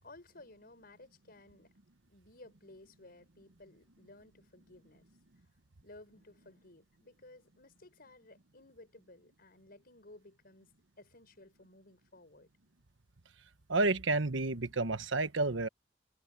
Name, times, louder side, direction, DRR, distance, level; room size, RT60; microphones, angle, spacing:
voice 1, 0.0-1.7 2.1-5.1 5.8-10.7 11.0-12.5, left 2 dB, 55° left, 5.6 m, -57 dB
voice 2, 13.7-15.7, right 3 dB, 90° right, 1.3 m, -30 dB
head